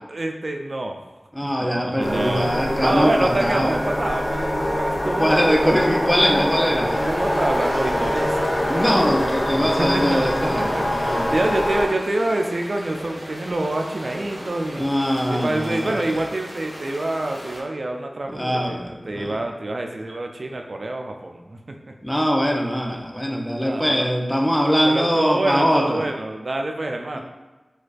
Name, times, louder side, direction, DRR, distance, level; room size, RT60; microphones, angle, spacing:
voice 1, 0.1-1.0 1.4-5.8 7.0-8.6 9.5-14.8 15.3-21.9 23.6-24.1 24.8-27.2, right 2 dB, 65° right, 3 dB, 0.3 m, -27 dB
voice 2, 1.3-3.7 5.2-7.0 8.7-11.4 14.8-16.2 18.3-19.4 22.0-26.0 27.1-27.2, equal, 5° left, 0 dB, 0.6 m, -22 dB
sound 1, 2.0-11.9, equal, 75° left, 1.0 m, -24 dB
sound 2, 6.8-17.6, equal, 30° right, 1.0 m, -38 dB
4.4 x 2.3 x 2.5 m, 1.2 s
wide cardioid pair, 40°, 0 cm